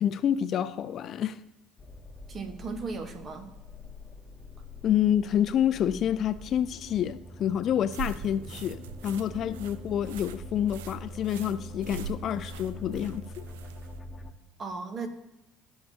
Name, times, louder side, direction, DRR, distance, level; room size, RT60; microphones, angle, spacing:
voice 1, 0.0-1.4 4.8-13.2, left 10 dB, 55° left, 0.4 m, -28 dB
sound 1, 1.8-14.3, left 1 dB, 30° left, 1.1 m, -44 dB
voice 2, 2.3-3.5 14.6-15.1, right 4 dB, 40° right, 1.3 m, -36 dB
sound 2, 7.9-14.0, right 7 dB, 80° right, 0.5 m, -43 dB
14.0 x 6.7 x 2.9 m
hypercardioid pair, 65°, 0 cm